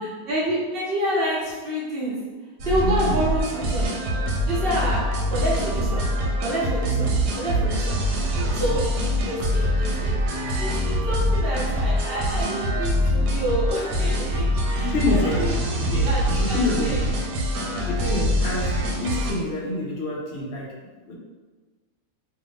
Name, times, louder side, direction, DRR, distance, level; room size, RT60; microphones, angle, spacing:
voice 1, 0.3-2.2 2.6-3.9 4.5-6.0 6.4-7.1 7.3-8.0 8.3-8.8 9.2-15.5 16.0-17.1, equal, 50° right, -6 dB, 0.8 m, -28 dB
sound 1, 2.6-19.3, equal, 80° right, 1.1 m, -24 dB
voice 2, 2.8-3.2 8.7-8.8 14.8-17.0 17.9-20.7 21.1-21.2, left 2 dB, 65° left, -3 dB, 0.6 m, -27 dB
2.7 x 2.5 x 3.3 m, 1.3 s
omnidirectional pair, 1.6 m